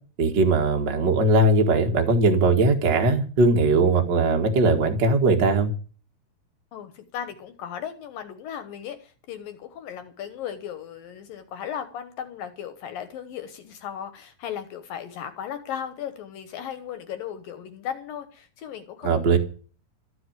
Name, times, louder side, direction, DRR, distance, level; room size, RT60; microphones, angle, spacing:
voice 1, 0.2-5.7 19.0-19.4, right 3 dB, 50° right, 4 dB, 1.3 m, -20 dB
voice 2, 6.7-19.4, left 9 dB, 65° left, 10 dB, 2.4 m, -36 dB
14.0 x 7.8 x 9.0 m, 0.39 s
omnidirectional pair, 5.1 m